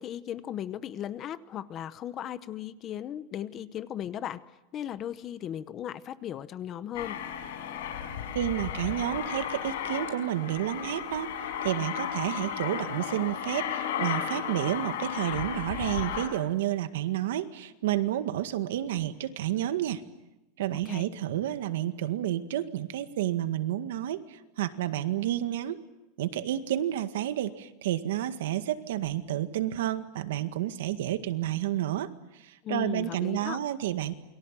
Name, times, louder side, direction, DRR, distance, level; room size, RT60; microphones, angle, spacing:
voice 1, 0.0-4.4 4.7-7.2 20.9-21.1 32.6-33.6, left 10 dB, 25° left, 15 dB, 0.8 m, -36 dB
Aircraft, 6.9-16.3, left 9 dB, 90° left, 5.2 m, -34 dB
voice 2, 8.3-20.0 20.6-25.8 26.2-34.2, right 12 dB, 85° right, 10 dB, 1.9 m, -30 dB
28.5 x 23.5 x 7.6 m, 1.0 s
supercardioid pair, 180°, 0 cm